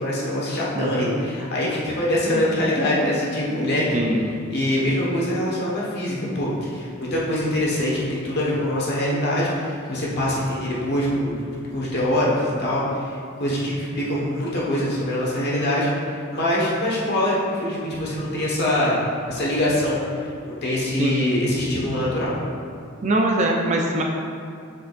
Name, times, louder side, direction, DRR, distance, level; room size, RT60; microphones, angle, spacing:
voice 1, 0.0-3.9 4.5-11.4 11.7-19.0 19.3-22.4, left 1 dB, 50° left, -5 dB, 1.4 m, -24 dB
voice 2, 0.7-1.1 3.9-4.3 21.0-21.1 23.0-24.0, right 1 dB, 30° right, 0 dB, 0.5 m, -22 dB
6.6 x 6.4 x 2.6 m, 2.4 s
head